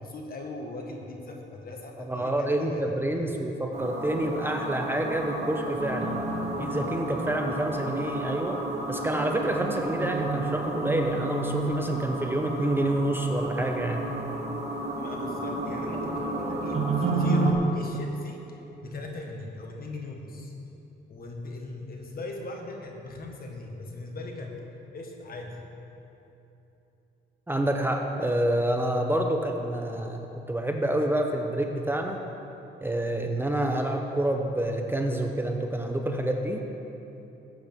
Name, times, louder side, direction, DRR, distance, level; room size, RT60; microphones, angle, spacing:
voice 1, 0.0-2.8 3.1-3.4 14.9-18.4 18.8-20.5 21.1-24.6 24.9-25.6, left 2 dB, 50° left, 1 dB, 1.6 m, -39 dB
voice 2, 2.0-6.2 6.6-14.0 27.5-32.2 32.8-36.6, right 1 dB, 10° right, 3 dB, 0.7 m, -28 dB
sound 1, 3.7-17.5, right 2 dB, 35° right, 1.7 m, -31 dB
15.5 x 8.0 x 3.6 m, 3.0 s
cardioid pair, 90°, 20 cm